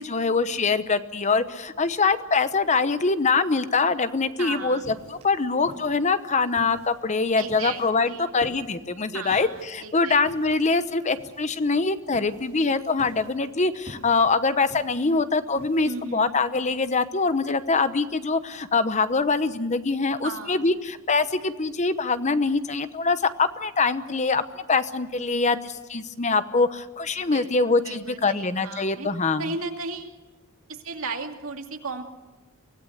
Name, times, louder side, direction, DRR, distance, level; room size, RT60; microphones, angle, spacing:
voice 1, 0.0-29.5, left 4 dB, 35° left, 12 dB, 0.9 m, -24 dB
voice 2, 4.4-4.9 7.4-8.3 9.1-10.2 15.8-16.4 20.2-20.6 27.2-27.5 27.8-29.1 29.4-30.1 30.7-32.0, right 4 dB, 80° right, 3 dB, 2.6 m, -35 dB
sound 1, 4.5-16.1, equal, 30° right, 5.5 m, -47 dB
24.5 x 17.0 x 8.1 m, 1.2 s
head